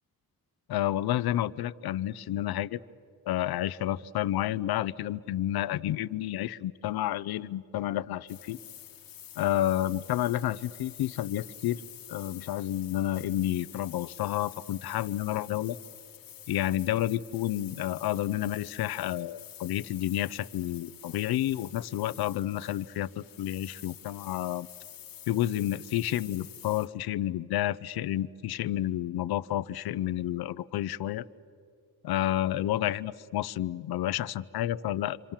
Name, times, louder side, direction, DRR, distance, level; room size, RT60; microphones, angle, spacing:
voice 1, 0.7-2.8 3.3-8.6 9.4-11.8 12.1-15.8 16.5-24.7 25.3-31.2 32.0-35.3, left 13 dB, 85° left, 16 dB, 0.7 m, -30 dB
sound 1, 8.3-26.9, left 11 dB, 70° left, 1.3 m, -48 dB
29.5 x 25.5 x 7.3 m, 2.4 s
cardioid pair, 95°, 36 cm